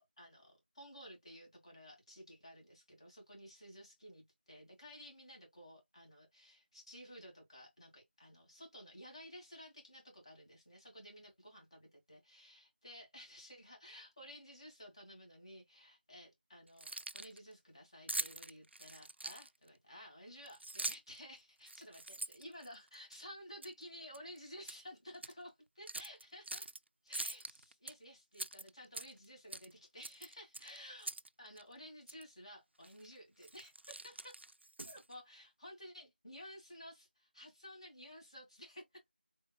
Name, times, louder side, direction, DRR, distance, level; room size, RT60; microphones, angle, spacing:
voice 1, 0.0-26.7 27.0-34.3 34.8-38.8, equal, 30° left, 2.2 m, -54 dB
Keys jangling, 16.7-17.4 18.1-19.7 20.5-21.2 21.6-23.2 23.6-23.8 24.1-24.8 25.1-25.3 25.9-26.8 27.1-27.9 28.3-29.3 29.5-29.7 30.0-31.3 31.6-31.7 32.1-32.2 32.8-33.1 33.4-35.1, right 2 dB, 90° right, 0.4 m, -43 dB
4.0 x 3.8 x 2.2 m
figure-of-eight pair, 175°, 6 cm